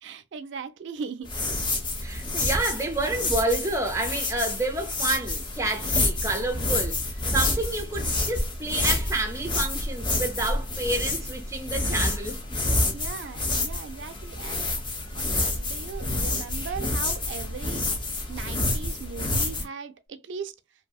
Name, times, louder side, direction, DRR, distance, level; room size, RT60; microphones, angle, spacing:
voice 1, 0.0-1.3 12.9-14.7 15.1-17.8 18.3-20.5, right 5 dB, 80° right, 0.4 m, -38 dB
sound 1, 1.2-19.6, left 2 dB, 25° left, 0.6 m, -28 dB
voice 2, 2.0-7.0 7.3-12.6, right 2 dB, 15° right, 0.5 m, -29 dB
2.7 x 2.7 x 2.3 m
head